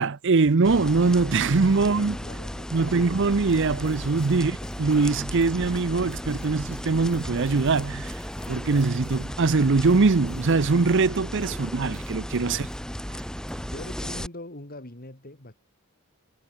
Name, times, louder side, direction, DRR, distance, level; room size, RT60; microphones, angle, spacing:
voice 1, 0.0-2.2 2.7-8.1 8.5-12.7, right 4 dB, 55° right, 0.7 m, -22 dB
sound 1, 0.6-14.3, equal, 5° left, 1.7 m, -35 dB
sound 2, 1.5-7.6, left 2 dB, 65° left, 2.1 m, -51 dB
voice 2, 1.8-3.1 4.4-4.6 12.5-12.7 13.6-15.6, left 1 dB, 45° left, 3.6 m, -43 dB
sound 3, 3.2-12.8 13.1-13.5, left 1 dB, 25° left, 4.4 m, -49 dB
head